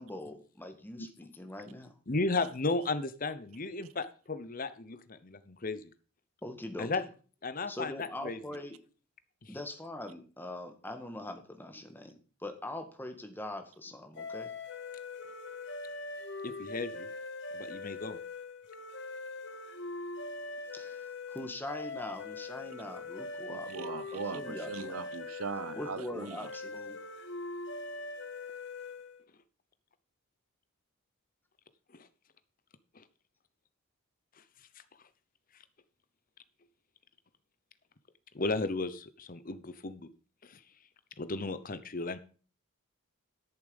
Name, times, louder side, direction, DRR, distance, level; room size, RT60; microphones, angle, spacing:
voice 1, 0.0-1.9 6.4-6.9 7.7-8.8 9.5-12.1 12.4-14.5 20.7-25.0 25.7-27.0, left 1 dB, 10° left, 1.7 m, -42 dB
voice 2, 2.1-5.9 6.8-7.0 7.4-8.4 9.4-9.6 16.4-17.1 17.5-18.2 31.9-32.1 32.9-33.0 38.3-40.1 40.4-40.6 41.2-42.2, left 3 dB, 40° left, 0.9 m, -34 dB
sound 1, 14.2-29.2, left 3 dB, 55° left, 1.3 m, -42 dB
voice 3, 23.5-26.4, right 5 dB, 80° right, 0.8 m, -40 dB
12.0 x 7.2 x 5.4 m
head